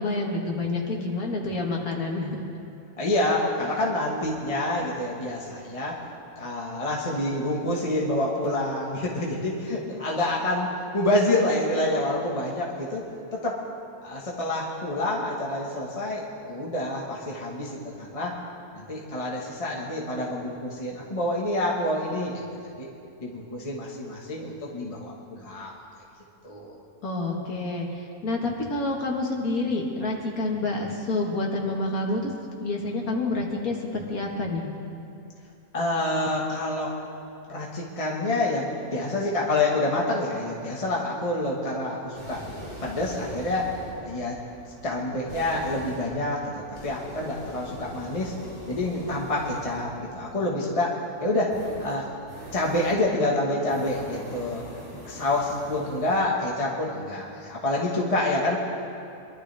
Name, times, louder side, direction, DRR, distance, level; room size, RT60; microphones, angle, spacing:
voice 1, 0.0-2.4 27.0-32.3 32.6-34.7, left 2 dB, 70° left, 0 dB, 2.2 m, -28 dB
voice 2, 3.0-6.0 6.4-13.7 14.0-18.4 18.7-22.4 22.8-22.9 23.2-25.7 26.4-26.8 35.7-37.0 37.5-42.4 42.8-43.7 44.0-44.4 44.8-48.3 48.7-52.1 52.5-54.7 55.0-58.6, left 1 dB, 25° left, -4 dB, 1.5 m, -27 dB
sound 1, 42.1-50.1 51.5-53.1 53.6-56.2, equal, 30° right, 4.7 m, -42 dB
23.0 x 12.5 x 3.5 m, 2.6 s
omnidirectional pair, 1.6 m